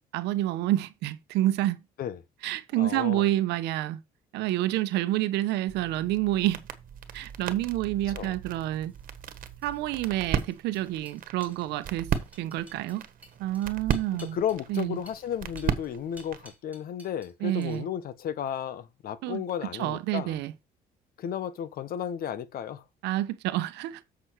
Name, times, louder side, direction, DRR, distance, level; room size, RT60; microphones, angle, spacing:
voice 1, 0.1-1.8 2.4-4.0 4.3-6.6 7.1-8.9 9.6-12.1 12.4-13.0 13.4-14.4 14.7-15.0 17.4-17.8 19.2-19.4 19.8-20.5 23.0-24.0, right 14 dB, 85° right, 0.9 m, -28 dB
voice 2, 2.8-3.3 8.1-8.3 14.1-20.4 21.2-22.8, left 9 dB, 60° left, 1.1 m, -33 dB
sound 1, 5.7-16.5, right 8 dB, 55° right, 1.5 m, -36 dB
sound 2, 8.8-17.3 17.6-18.1, right 1 dB, 10° right, 2.6 m, -54 dB
7.8 x 6.2 x 4.6 m
cardioid pair, 110°, 17 cm